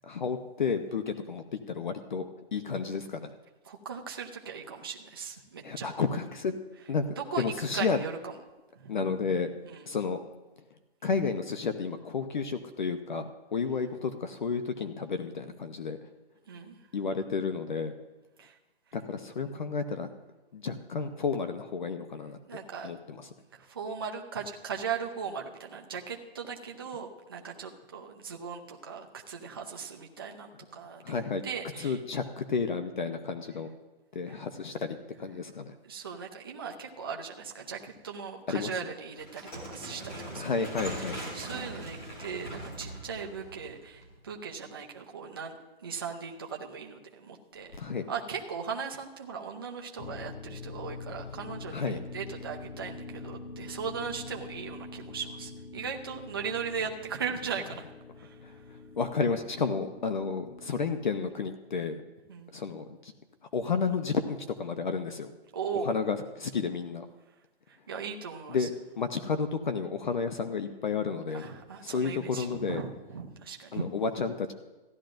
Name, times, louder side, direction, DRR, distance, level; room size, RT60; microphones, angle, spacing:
voice 1, 0.0-3.3 5.6-6.5 6.9-7.0 7.4-8.0 8.9-9.5 9.9-10.2 11.0-16.0 16.9-17.9 18.9-20.1 20.5-22.4 22.8-23.2 31.0-31.4 31.8-33.7 34.1-35.7 38.5-38.7 40.4-41.2 47.8-48.1 51.7-52.0 58.4-58.5 59.0-62.0 62.5-63.1 63.5-65.3 65.8-67.1 68.5-71.5 71.8-72.8 73.7-74.5, left 5 dB, 50° left, 8 dB, 0.7 m, -31 dB
voice 2, 3.6-5.9 7.2-8.3 8.8-9.1 9.6-9.9 16.5-16.8 18.4-18.6 22.5-22.9 23.5-32.0 34.3-34.4 35.8-40.6 40.9-45.6 45.8-47.7 48.1-57.8 58.2-58.4 62.3-62.5 65.5-65.9 67.7-68.7 71.3-73.9, right 6 dB, 20° right, 1 dB, 0.6 m, -38 dB
sound 1, 39.2-44.3, right 1 dB, 15° left, 1.4 m, -41 dB
sound 2, 50.0-61.2, left 3 dB, 85° left, 1.3 m, -45 dB
15.5 x 11.5 x 2.6 m, 1.1 s
hypercardioid pair, 175°, 32 cm